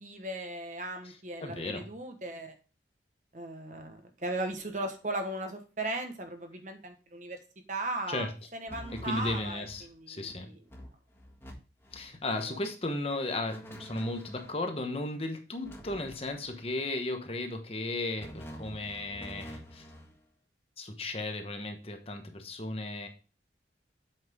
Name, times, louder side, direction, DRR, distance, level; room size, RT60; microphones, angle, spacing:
voice 1, 0.0-2.5 3.3-7.4 7.7-10.6 12.5-12.6, right 2 dB, 45° right, 6 dB, 1.2 m, -37 dB
voice 2, 1.0-1.9 8.1-8.3 8.9-10.5 11.9-19.9 20.8-23.1, left 2 dB, 30° left, 5 dB, 1.0 m, -35 dB
sound 1, 8.7-9.9 10.3-10.4 10.7-11.5 11.8-12.1 13.5-14.6 15.6-16.6 18.2-20.1, equal, 15° left, 1.7 m, -47 dB
8.1 x 5.7 x 3.6 m, 0.34 s
head